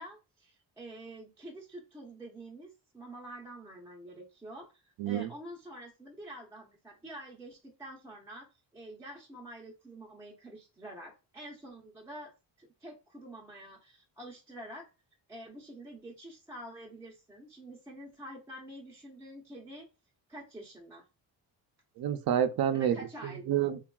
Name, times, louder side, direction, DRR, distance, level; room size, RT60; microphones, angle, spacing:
voice 1, 0.0-8.5 8.7-12.3 12.6-14.9 15.3-19.9 20.3-21.1 22.7-23.5, right 1 dB, 5° right, 0.6 m, -47 dB
voice 2, 5.0-5.3 22.0-23.8, right 10 dB, 60° right, 0.5 m, -29 dB
3.3 x 2.3 x 2.3 m
cardioid pair, 100°, 42 cm